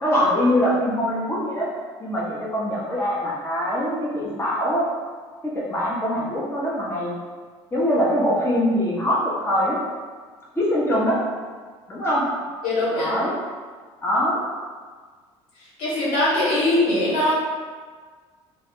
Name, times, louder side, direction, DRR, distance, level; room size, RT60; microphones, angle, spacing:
voice 1, 0.0-1.7 2.0-4.9 5.4-7.1 7.7-9.8 10.5-11.2 11.9-12.3 13.0-13.4 14.0-14.4, equal, 15° left, -6 dB, 0.8 m, -23 dB
voice 2, 12.6-13.2 15.8-17.3, left 1 dB, 65° left, -8 dB, 1.3 m, -21 dB
2.3 x 2.1 x 3.5 m, 1.5 s
hypercardioid pair, 65°, 15 cm